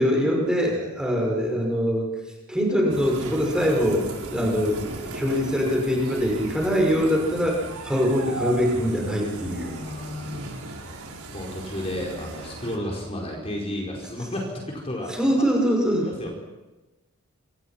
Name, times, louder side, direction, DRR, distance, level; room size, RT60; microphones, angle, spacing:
voice 1, 0.0-2.1 2.5-9.7 15.1-16.1, equal, 5° right, -1 dB, 6.0 m, -23 dB
sound 1, 2.9-12.8, right 2 dB, 80° right, 5.3 m, -37 dB
voice 2, 9.4-10.7 11.3-15.4 16.0-16.3, left 1 dB, 25° left, -1 dB, 5.0 m, -33 dB
27.5 x 26.5 x 6.0 m, 1.1 s
head